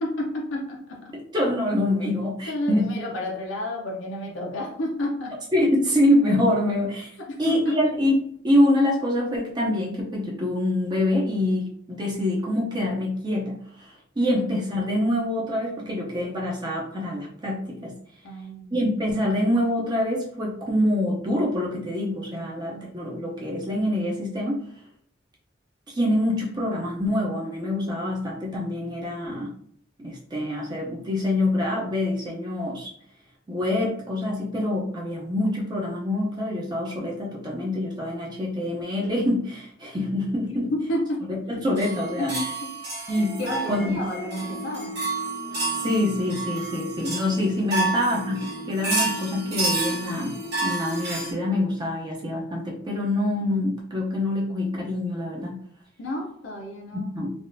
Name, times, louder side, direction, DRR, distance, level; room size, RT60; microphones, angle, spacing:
voice 1, 0.0-1.1 2.5-5.3 7.2-7.8 14.3-14.4 18.2-18.8 22.4-22.9 40.5-41.4 42.2-42.7 43.4-45.0 47.8-48.2 56.0-57.1, left 1 dB, 75° left, -1 dB, 0.6 m, -31 dB
voice 2, 1.3-2.9 5.5-7.1 7.4-8.1 8.4-17.9 18.7-24.7 25.9-29.5 30.0-32.9 33.5-40.7 41.3-42.3 43.1-43.4 43.7-44.1 45.8-55.6 57.1-57.3, left 1 dB, 20° right, -3 dB, 0.5 m, -25 dB
sound 1, 41.8-51.3, right 3 dB, 60° right, 1.4 m, -30 dB
sound 2, 43.1-51.7, left 2 dB, 75° right, 0.8 m, -39 dB
3.4 x 2.4 x 2.5 m, 0.65 s
head